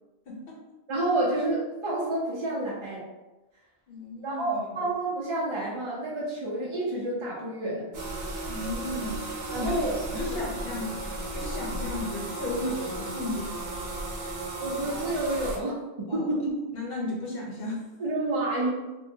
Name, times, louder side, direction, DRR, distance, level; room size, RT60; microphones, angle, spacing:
voice 1, 0.3-0.6 3.9-4.9 8.5-9.8 10.1-11.0 11.3-13.6 16.1-16.2 16.7-17.9, left 2 dB, 65° left, -3 dB, 0.9 m, -34 dB
voice 2, 0.9-3.0 4.2-7.9 9.5-9.9 10.3-10.4 14.6-16.5 18.0-18.7, right 2 dB, 40° right, -6 dB, 0.5 m, -29 dB
sound 1, 7.9-15.6, right 2 dB, 75° right, 0.9 m, -35 dB
2.7 x 2.1 x 2.6 m, 1.1 s
omnidirectional pair, 1.1 m